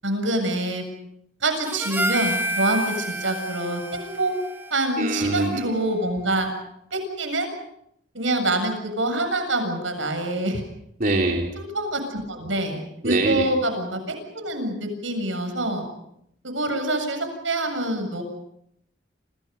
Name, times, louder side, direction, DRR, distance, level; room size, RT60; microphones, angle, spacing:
voice 1, 0.0-0.9 1.4-4.3 4.7-6.5 6.9-7.5 8.1-10.7 11.6-15.9 16.4-18.2, right 1 dB, 80° right, 6 dB, 7.4 m, -26 dB
Harmonica, 1.7-6.1, right 1 dB, 10° right, 1.2 m, -30 dB
voice 2, 5.0-5.5 11.0-11.5 13.0-13.5, right 2 dB, 45° right, 0 dB, 3.3 m, -23 dB
30.0 x 28.0 x 5.4 m, 0.76 s
head